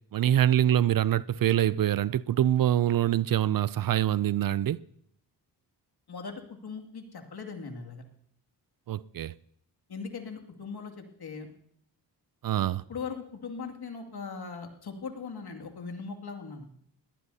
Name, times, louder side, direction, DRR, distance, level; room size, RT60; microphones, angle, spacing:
voice 1, 0.1-4.8 8.9-9.3 12.4-12.8, right 11 dB, 55° right, 0.5 m, -25 dB
voice 2, 6.1-8.0 9.9-11.5 12.9-16.7, left 5 dB, 60° left, 2.4 m, -39 dB
20.5 x 18.0 x 2.8 m
cardioid pair, 50°, 42 cm